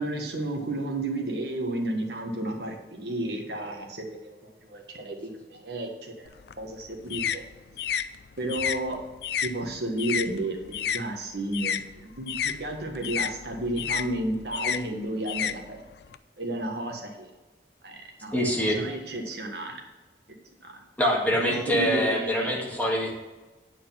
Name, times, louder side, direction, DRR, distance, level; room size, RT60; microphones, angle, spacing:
voice 1, 0.0-6.3 6.6-7.4 8.4-9.0 9.4-15.8 16.4-17.3 17.8-19.8 20.6-20.8 21.4-22.6, right 1 dB, 70° right, 2 dB, 1.5 m, -32 dB
sound 1, 6.3-11.0 11.3-16.2, left 8 dB, 70° left, 0.4 m, -31 dB
voice 2, 18.3-18.8 21.0-23.1, equal, 10° left, -3 dB, 1.8 m, -24 dB
9.1 x 5.0 x 5.8 m, 1.2 s
head